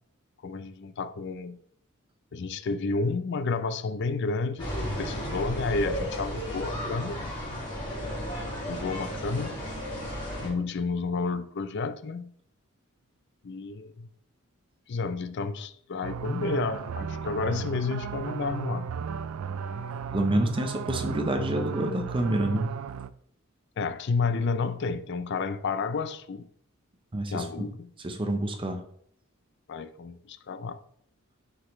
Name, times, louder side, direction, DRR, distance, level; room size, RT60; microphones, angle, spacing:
voice 1, 0.4-1.6 2.3-7.2 8.7-9.5 10.4-12.3 13.4-14.1 14.9-18.9 23.8-26.5 27.3-27.9 29.7-30.8, left 4 dB, 55° left, 0.4 m, -31 dB
sound 1, 4.6-10.5, equal, 20° left, 2.0 m, -34 dB
sound 2, 16.0-23.1, right 6 dB, 80° right, 0.3 m, -35 dB
voice 2, 20.1-22.7 27.1-27.7 28.0-28.8, right 1 dB, 25° right, 0.7 m, -28 dB
6.3 x 5.1 x 3.1 m
head